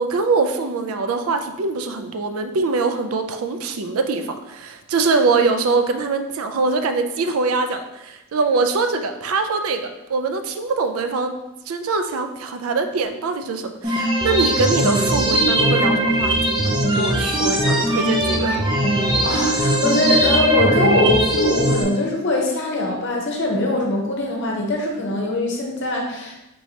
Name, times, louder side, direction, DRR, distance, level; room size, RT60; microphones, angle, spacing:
voice 1, 0.0-11.3 11.7-18.6, right 3 dB, 85° right, 7 dB, 0.4 m, -23 dB
sound 1, 13.8-21.8, right 1 dB, 20° right, 0.6 m, -20 dB
voice 2, 19.2-26.3, left 2 dB, 55° left, 0 dB, 0.8 m, -22 dB
4.6 x 3.1 x 2.7 m, 0.94 s
head